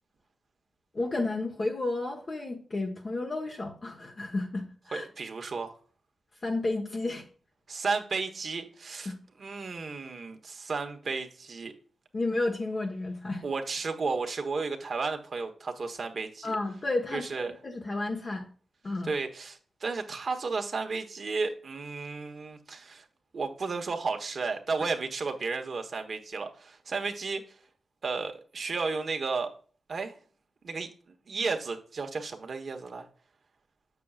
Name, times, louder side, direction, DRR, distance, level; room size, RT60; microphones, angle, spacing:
voice 1, 0.9-5.0 6.4-7.2 9.0-9.2 12.1-13.4 16.4-18.5 18.8-19.1, left 2 dB, 40° left, 1.2 m, -32 dB
voice 2, 4.9-5.8 7.7-9.1 9.4-11.7 13.4-16.6 17.1-17.5 19.0-23.0 23.3-27.4 28.0-29.5 29.9-30.1 30.6-30.9 31.3-33.1, right 4 dB, 55° right, 1.2 m, -33 dB
8.4 x 6.9 x 2.4 m
wide cardioid pair, 95°, 0 cm